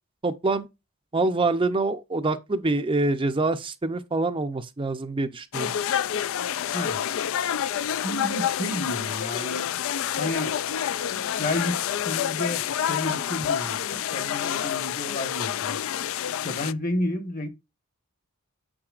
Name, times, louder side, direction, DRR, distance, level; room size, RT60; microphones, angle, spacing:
voice 1, 0.2-0.7 1.1-5.7, right 2 dB, 25° right, 0.5 m, -25 dB
sound 1, 5.5-16.7, left 9 dB, 65° left, 0.3 m, -28 dB
voice 2, 7.6-9.6 10.1-10.5 11.4-12.6 12.9-15.8 16.4-17.5, left 1 dB, 40° left, 1.2 m, -31 dB
8.7 x 6.9 x 2.5 m
head